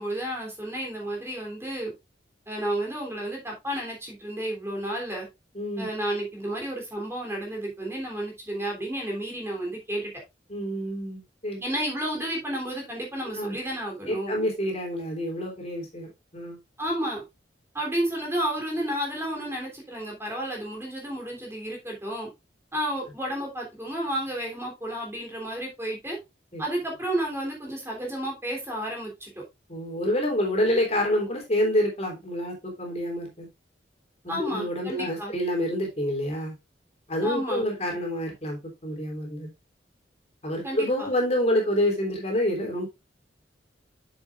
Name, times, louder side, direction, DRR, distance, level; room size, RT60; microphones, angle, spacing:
voice 1, 0.0-1.9 2.5-5.3 5.8-10.1 11.6-14.4 16.8-17.2 17.7-22.3 22.7-26.2 26.6-29.4 34.3-35.3 37.2-37.6 40.6-41.1, right 1 dB, 15° right, 0 dB, 3.4 m, -31 dB
voice 2, 5.6-5.9 10.5-11.6 13.4-13.6 14.1-16.6 26.5-26.6 29.7-33.5 34.2-36.6 37.1-39.5 40.4-42.9, left 1 dB, 35° left, 0 dB, 3.5 m, -27 dB
9.6 x 7.3 x 2.5 m, 0.22 s
head